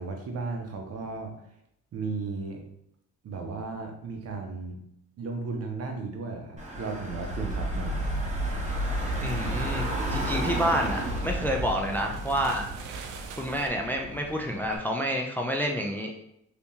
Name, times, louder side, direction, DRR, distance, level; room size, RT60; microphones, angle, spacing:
voice 1, 0.0-1.3 1.9-2.6 3.2-4.8 5.2-8.2, right 4 dB, 55° right, 3 dB, 0.8 m, -35 dB
Car / Engine, 6.6-14.8, equal, 25° right, 1.1 m, -36 dB
sound 1, 7.1-13.9, right 1 dB, 85° right, 0.5 m, -33 dB
voice 2, 9.2-12.6 13.4-16.1, equal, 5° left, 1 dB, 0.4 m, -29 dB
3.4 x 2.9 x 2.7 m, 0.77 s
cardioid pair, 90°, 30 cm